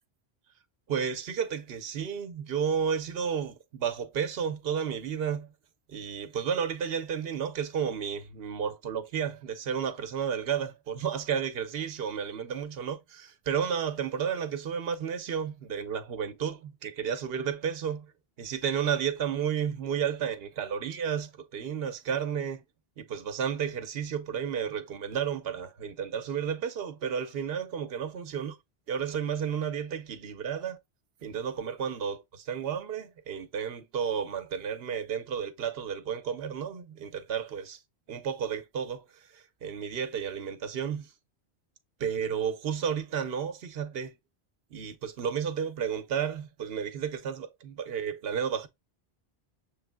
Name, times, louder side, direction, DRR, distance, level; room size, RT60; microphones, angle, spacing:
voice 1, 0.9-5.5 5.9-18.1 18.4-22.6 23.0-28.6 28.9-30.8 31.2-37.8 38.1-41.1 42.0-44.1 44.7-48.7, right 7 dB, 70° right, 0.9 m, -32 dB
7.0 x 3.2 x 2.2 m
omnidirectional pair, 1.1 m